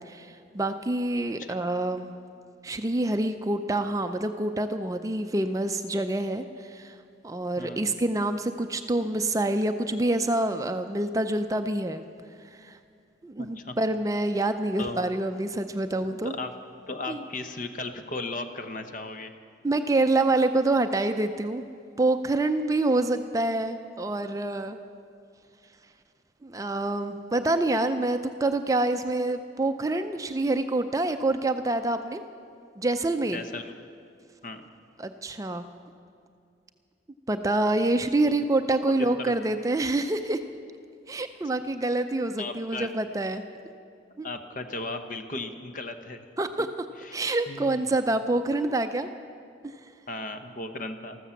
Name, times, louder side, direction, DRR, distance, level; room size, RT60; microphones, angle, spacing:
voice 1, 0.1-2.1 2.6-7.0 7.2-12.0 12.5-12.8 13.2-16.3 17.1-17.2 19.6-21.6 22.0-24.8 26.4-32.2 32.8-33.4 35.0-35.7 37.3-40.4 41.1-43.4 44.2-44.3 46.4-46.7 47.1-49.1 49.6-49.7, right 2 dB, 20° right, 8 dB, 0.4 m, -26 dB
voice 2, 7.6-7.9 13.4-13.7 14.8-15.1 16.2-16.5 16.9-19.3 33.3-33.8 34.4-34.6 39.0-39.3 42.4-42.9 44.2-46.2 47.0-47.1 47.5-47.9 50.1-51.2, left 2 dB, 45° left, 7 dB, 0.8 m, -36 dB
14.0 x 13.5 x 7.1 m, 2.4 s
head